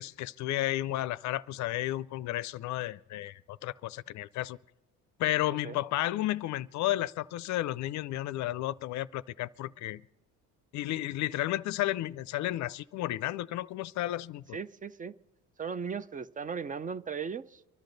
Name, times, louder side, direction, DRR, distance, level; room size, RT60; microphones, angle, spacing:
voice 1, 0.0-4.6 5.2-10.0 10.7-14.6, left 15 dB, 60° left, 0.5 m, -32 dB
voice 2, 14.5-15.1 15.6-17.6, right 6 dB, 25° right, 0.5 m, -37 dB
24.5 x 11.5 x 4.0 m
cardioid pair, 100°, 33 cm